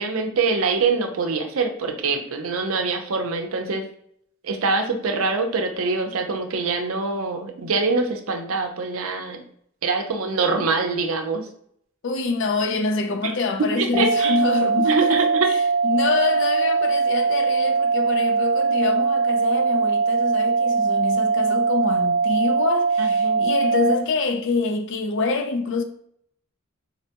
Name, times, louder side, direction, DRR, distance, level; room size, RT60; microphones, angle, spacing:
voice 1, 0.0-3.9 4.4-9.4 9.8-11.5 13.2-13.3 13.6-14.4 14.8-15.5 23.0-23.5, right 4 dB, 70° right, 0.5 m, -24 dB
voice 2, 12.0-25.8, left 4 dB, 60° left, 0.4 m, -26 dB
sound 1, 13.9-23.9, right 4 dB, 20° right, 0.4 m, -21 dB
4.0 x 2.2 x 2.8 m
head